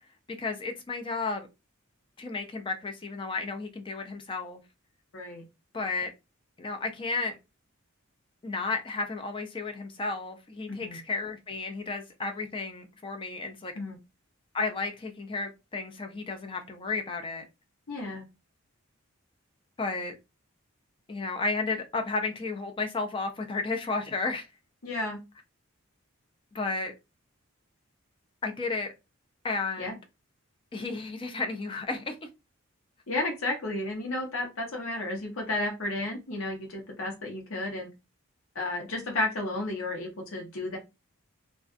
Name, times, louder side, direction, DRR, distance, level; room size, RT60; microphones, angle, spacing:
voice 1, 0.4-1.5 2.2-4.6 5.7-6.1 6.6-7.4 8.4-13.7 14.5-17.4 19.8-20.1 21.1-24.5 26.5-26.9 28.4-28.9 29.4-30.0 30.7-32.2, left 3 dB, 25° left, 0.4 m, -33 dB
voice 2, 10.7-11.0 13.7-14.0 17.9-18.2 24.8-25.2 29.8-29.9 33.1-37.9 38.5-40.8, left 2 dB, 70° left, 0.9 m, -32 dB
2.4 x 2.3 x 2.3 m
head